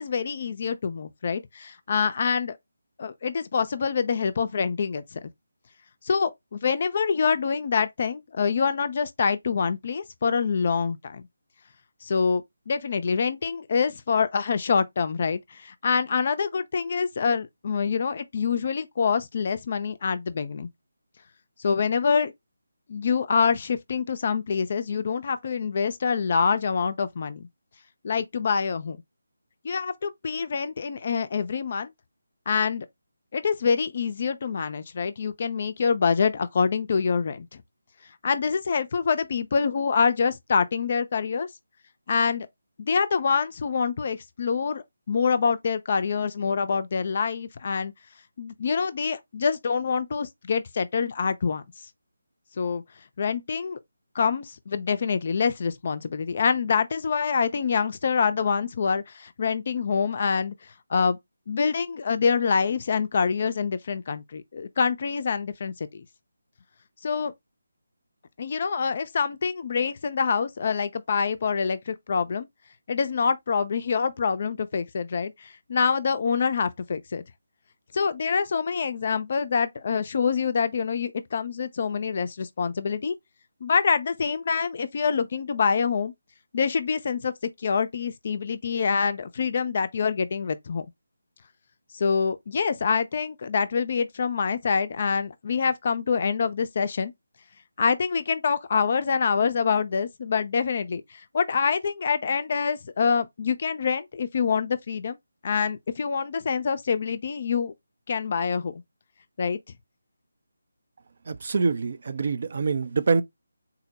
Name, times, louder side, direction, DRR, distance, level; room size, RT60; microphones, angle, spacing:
voice 1, 0.0-2.6 3.0-5.2 6.0-11.2 12.0-20.7 21.6-22.3 22.9-27.5 28.0-29.0 29.6-31.9 32.5-32.9 33.3-37.5 38.2-41.5 42.1-42.5 42.8-47.9 48.4-51.6 52.6-52.8 53.2-53.8 54.1-60.5 60.9-61.2 61.5-66.0 67.0-67.3 68.4-72.5 72.9-77.2 77.9-83.2 83.6-86.1 86.5-87.3 87.6-90.9 91.9-97.1 97.8-105.2 105.4-107.7 108.1-108.8 109.4-109.6, left 5 dB, 40° left, 0.4 m, -26 dB
voice 2, 111.3-113.2, right 4 dB, 45° right, 0.4 m, -25 dB
3.9 x 2.1 x 2.8 m
figure-of-eight pair, 155°, 0 cm